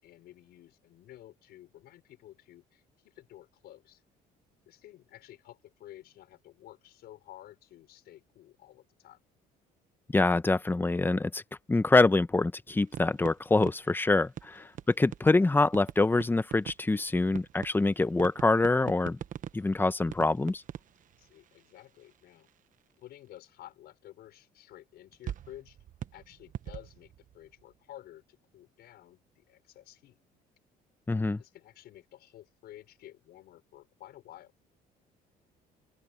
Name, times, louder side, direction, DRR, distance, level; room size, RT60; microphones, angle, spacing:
voice 1, 0.0-4.0 4.7-9.2 14.5-14.7 21.2-22.5 23.0-25.8 26.1-30.2 31.1-34.5, left 13 dB, 70° left, 5.4 m, -52 dB
voice 2, 10.1-11.4 11.7-19.2 19.5-20.6 31.1-31.4, left 3 dB, 10° left, 0.9 m, -25 dB
sound 1, 12.8-22.2 22.4-22.5 25.1-27.7, right 10 dB, 50° right, 1.1 m, -44 dB
open air
cardioid pair, 110°, 17 cm